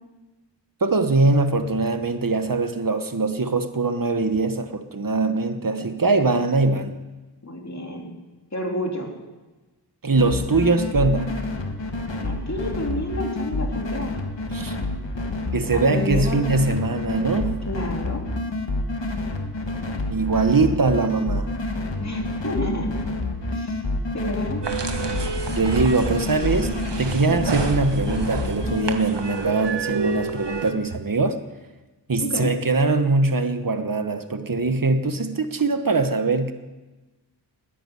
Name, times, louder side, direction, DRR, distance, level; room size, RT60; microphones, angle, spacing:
voice 1, 0.8-7.0 10.0-11.3 14.5-14.8 15.5-17.5 20.1-21.5 25.5-31.3 32.1-36.5, right 3 dB, 50° right, 8 dB, 1.3 m, -22 dB
voice 2, 7.4-8.1 8.5-9.1 12.2-14.1 15.7-16.4 17.6-18.2 22.0-22.9 23.5-23.8 24.1-24.6 32.2-32.5, left 1 dB, 40° left, 1 dB, 3.2 m, -29 dB
sound 1, 10.2-29.0, left 2 dB, 85° left, 1.6 m, -28 dB
sound 2, 24.6-30.7, right 3 dB, 75° right, 1.4 m, -29 dB
14.0 x 10.0 x 9.7 m, 1.2 s
wide cardioid pair, 45°, 43 cm